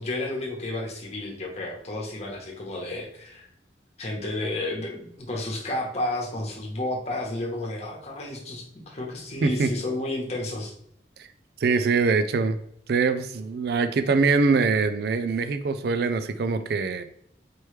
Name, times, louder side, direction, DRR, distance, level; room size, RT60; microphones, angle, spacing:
voice 1, 0.0-3.5 4.0-10.7, left 2 dB, 35° left, -1 dB, 1.1 m, -31 dB
voice 2, 9.4-9.7 11.2-11.3 11.6-12.6 12.9-17.0, right 4 dB, 60° right, 10 dB, 0.4 m, -23 dB
4.5 x 3.1 x 3.2 m, 0.71 s
head